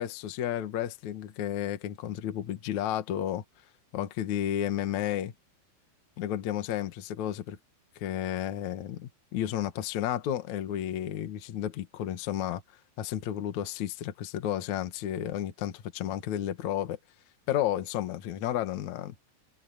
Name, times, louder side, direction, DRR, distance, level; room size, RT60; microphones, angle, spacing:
voice 1, 0.0-3.4 3.9-5.3 6.2-7.6 7.9-12.6 13.0-17.0 17.5-19.1, left 11 dB, 70° left, 1.7 m, -32 dB
omnidirectional pair, 5.8 m